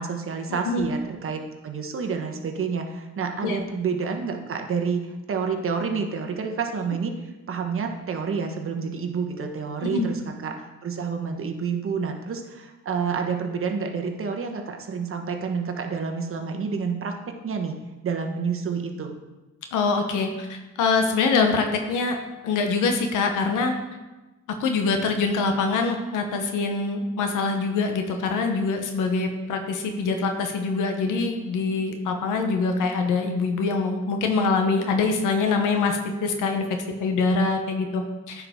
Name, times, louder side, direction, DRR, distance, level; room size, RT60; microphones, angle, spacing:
voice 1, 0.0-5.0 5.3-7.1 7.5-17.1 17.4-17.7 18.0-19.2, right 5 dB, 45° right, 4 dB, 1.1 m, -29 dB
voice 2, 19.7-22.2 22.4-23.7 24.6-36.6 37.0-38.5, left 4 dB, 85° left, 5 dB, 0.9 m, -24 dB
9.7 x 4.8 x 3.6 m, 1.1 s
cardioid pair, 90°, 30 cm